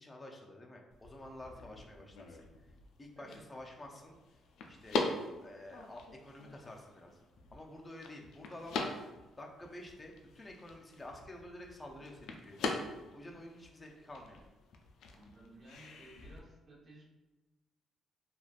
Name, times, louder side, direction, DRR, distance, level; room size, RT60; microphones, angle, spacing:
voice 1, 0.0-2.4 3.0-4.2 4.6-5.0 5.4-7.2 7.5-9.1 9.4-12.7 13.1-14.4, left 1 dB, 25° left, 0 dB, 0.5 m, -50 dB
sound 1, 0.9-16.4, left 3 dB, 80° left, 0.3 m, -43 dB
voice 2, 15.1-17.0, right 1 dB, 40° right, -3 dB, 0.9 m, -56 dB
3.2 x 2.4 x 2.4 m, 1.1 s
cardioid pair, 90°, 0 cm